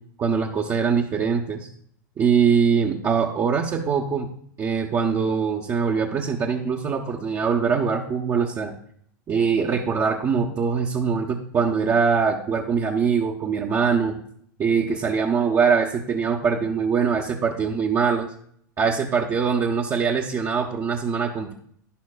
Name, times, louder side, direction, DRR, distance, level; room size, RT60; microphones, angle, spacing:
voice 1, 0.2-1.7 2.2-4.3 4.6-8.7 9.3-14.2 14.6-18.3 18.8-21.5, right 6 dB, 30° right, -1 dB, 1.0 m, -22 dB
11.5 x 10.5 x 2.4 m, 0.64 s
hypercardioid pair, 95°, 11 cm